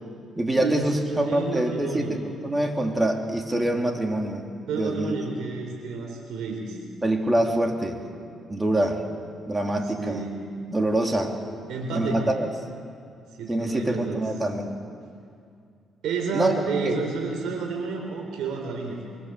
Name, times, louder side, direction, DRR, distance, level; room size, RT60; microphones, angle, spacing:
voice 1, 0.3-4.4 4.7-5.4 7.0-8.0 8.5-9.0 9.5-10.3 10.7-11.3 11.9-12.5 13.5-14.7 16.3-16.5 16.8-17.0, right 1 dB, 15° right, 2 dB, 3.0 m, -25 dB
voice 2, 1.1-2.2 4.7-6.8 10.0-10.5 11.7-12.2 13.4-14.2 16.0-19.1, right 4 dB, 85° right, 1 dB, 3.6 m, -30 dB
24.0 x 23.5 x 7.7 m, 2.3 s
cardioid pair, 90°, 0 cm